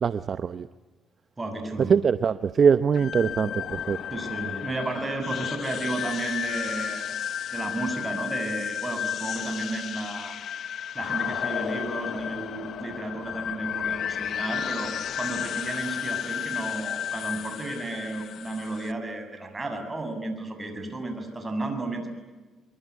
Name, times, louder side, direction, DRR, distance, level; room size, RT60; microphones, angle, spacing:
voice 1, 0.0-0.7 1.9-4.0, right 6 dB, 50° right, 13 dB, 0.8 m, -22 dB
voice 2, 1.4-1.9 4.1-7.0 7.5-10.4 10.9-14.9 15.2-22.1, right 2 dB, 25° right, 6 dB, 7.2 m, -33 dB
sound 1, 2.9-18.9, left 9 dB, 65° left, 1.0 m, -32 dB
24.5 x 23.5 x 9.7 m, 1.3 s
cardioid pair, 90°, 0 cm